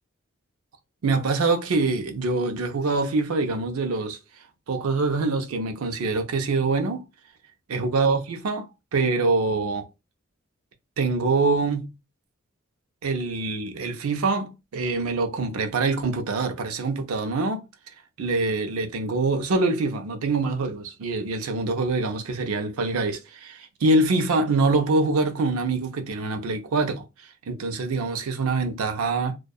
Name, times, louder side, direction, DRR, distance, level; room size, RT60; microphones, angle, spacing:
voice 1, 1.0-4.2 4.7-7.0 7.7-9.8 11.0-11.9 13.0-17.7 18.2-27.0 27.5-29.4, right 3 dB, 85° right, 0.5 m, -25 dB
2.7 x 2.2 x 2.2 m
head